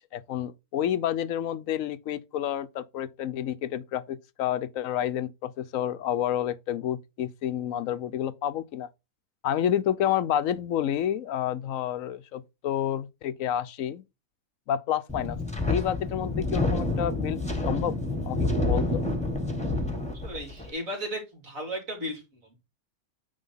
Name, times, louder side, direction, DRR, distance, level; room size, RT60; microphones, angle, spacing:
voice 1, 0.1-8.9 9.4-14.0 14.7-15.4 15.7-17.4 17.7-17.9 18.3-19.0, left 10 dB, 70° left, 1.0 m, -29 dB
Wind, 15.1-20.7, left 2 dB, 5° left, 1.3 m, -28 dB
voice 2, 20.1-22.4, equal, 65° right, 3.0 m, -35 dB
9.1 x 3.6 x 5.6 m
omnidirectional pair, 1.5 m